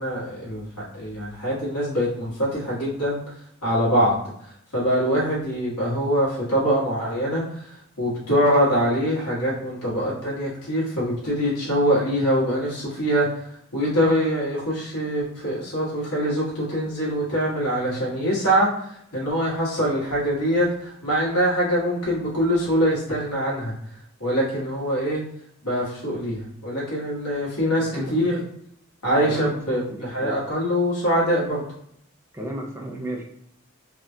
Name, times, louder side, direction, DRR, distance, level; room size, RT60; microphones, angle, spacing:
voice 1, 0.0-3.2 3.6-23.7 24.2-25.2 25.6-28.4 29.0-31.6, equal, 90° left, -6 dB, 1.5 m, -24 dB
voice 2, 27.9-28.2 29.2-29.5 29.9-30.4 32.3-33.2, right 1 dB, 10° right, 0 dB, 0.4 m, -33 dB
3.5 x 2.3 x 2.7 m, 0.70 s
head